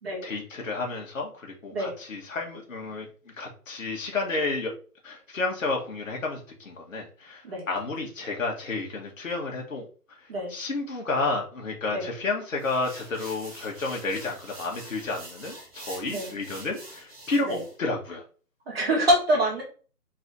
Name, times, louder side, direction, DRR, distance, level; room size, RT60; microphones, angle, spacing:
voice 1, 0.2-3.1 3.4-4.7 5.0-9.9 10.5-18.2, left 3 dB, 55° left, 0 dB, 1.6 m, -31 dB
sound 1, 12.6-17.7, right 2 dB, 20° right, 1.3 m, -45 dB
voice 2, 18.7-19.6, equal, 40° right, -2 dB, 1.8 m, -25 dB
4.1 x 3.3 x 4.0 m, 0.38 s
hypercardioid pair, 170°, 47 cm